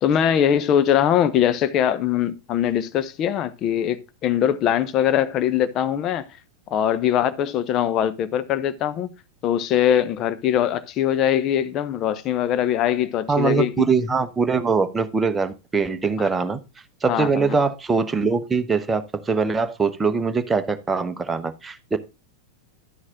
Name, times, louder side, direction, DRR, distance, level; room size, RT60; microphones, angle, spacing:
voice 1, 0.0-6.3 6.7-9.1 9.4-13.9 16.2-16.3 17.1-17.5, left 10 dB, 35° left, 0.9 m, -22 dB
voice 2, 13.3-16.6 17.0-22.0, right 4 dB, 15° right, 0.9 m, -22 dB
11.0 x 6.4 x 3.6 m
figure-of-eight pair, 90°, 0 cm